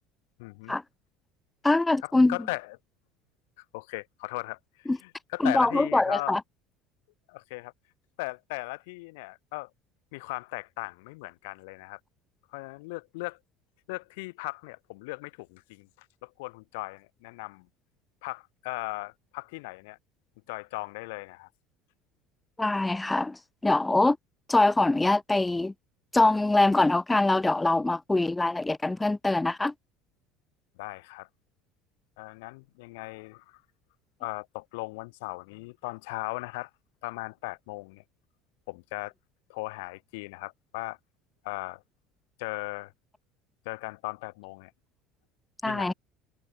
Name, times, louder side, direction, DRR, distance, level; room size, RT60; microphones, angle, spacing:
voice 1, 0.4-0.8 2.0-2.8 3.6-6.4 7.3-7.7 8.2-9.7 10.1-12.0 12.5-13.4 13.9-17.7 18.2-20.0 20.5-21.5 30.8-31.3 32.2-33.6 34.2-36.7 37.0-38.0 38.7-39.1 39.5-41.0 41.4-41.8 42.4-42.9 43.7-44.7 45.6-45.9, left 25 dB, 85° left, 2.2 m, -38 dB
voice 2, 1.6-2.4 4.9-5.0 5.4-6.4 22.6-24.2 24.5-25.7 26.1-29.7 45.6-45.9, left 2 dB, 10° left, 0.9 m, -23 dB
supercardioid pair, 105°, 0 cm